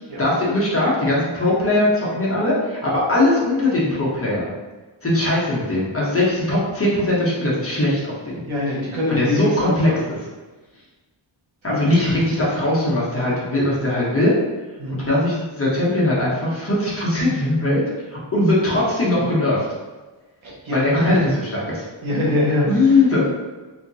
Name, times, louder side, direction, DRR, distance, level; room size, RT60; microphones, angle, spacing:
voice 1, 0.2-4.5 5.0-8.4 9.1-9.9 11.6-14.3 14.9-17.8 18.1-19.7 20.7-21.2 21.5-21.9 22.7-23.3, left 1 dB, 30° left, -7 dB, 1.1 m, -20 dB
voice 2, 8.4-10.1 11.6-12.2 14.8-15.0 20.4-21.2 22.0-23.3, left 2 dB, 90° right, -5 dB, 1.2 m, -24 dB
3.7 x 2.9 x 2.7 m, 1.2 s
wide cardioid pair, 130°, 46 cm